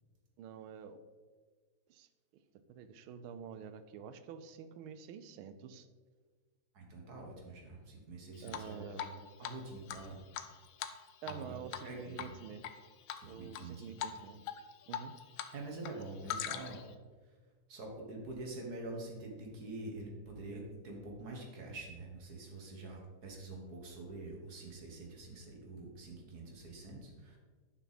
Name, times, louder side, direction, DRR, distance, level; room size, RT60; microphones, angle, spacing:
voice 1, 0.4-1.0 1.9-2.4 2.7-5.9 8.4-9.4 11.2-12.7 13.3-14.5 14.9-15.2, right 7 dB, 80° right, 12 dB, 1.5 m, -48 dB
voice 2, 6.7-9.0 9.4-10.2 11.3-12.3 13.2-14.0 15.5-16.8 17.7-27.4, right 2 dB, 50° right, 0 dB, 1.9 m, -46 dB
Drip, 8.5-9.1 9.4-9.5 9.9-11.4 11.7-11.9 12.2-12.7 13.1-13.6 14.0-14.2 14.5-15.5 15.8-16.9, left 10 dB, 80° left, 1.4 m, -41 dB
10.0 x 5.7 x 4.1 m, 1.5 s
omnidirectional pair, 2.3 m